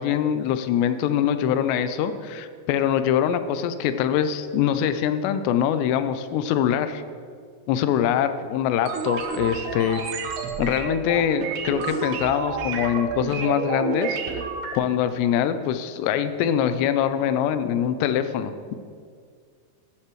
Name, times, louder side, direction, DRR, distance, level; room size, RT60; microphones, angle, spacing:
voice 1, 0.0-7.0 7.7-10.0 10.6-14.2 14.7-18.8, left 9 dB, 80° left, 11 dB, 2.7 m, -23 dB
sound 1, 8.9-14.8, right 5 dB, 80° right, 3.2 m, -30 dB
14.0 x 11.0 x 3.1 m, 2.1 s
omnidirectional pair, 5.1 m